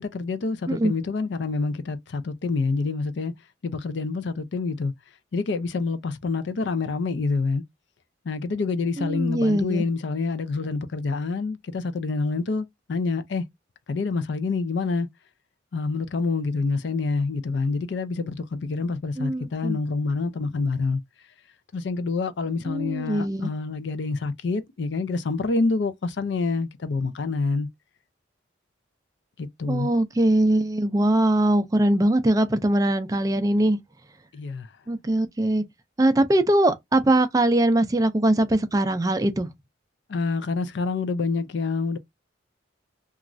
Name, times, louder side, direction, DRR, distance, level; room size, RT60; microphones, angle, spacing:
voice 1, 0.0-3.3 3.6-4.9 5.3-7.6 8.2-13.4 13.9-15.1 15.7-21.0 21.7-27.7 29.4-29.9 34.3-34.7 40.1-42.0, left 4 dB, 65° left, 0.4 m, -27 dB
voice 2, 9.0-9.8 19.2-19.8 22.7-23.5 29.7-33.8 34.9-35.6 36.0-39.5, right 1 dB, 20° right, 0.3 m, -22 dB
3.0 x 2.4 x 2.5 m
head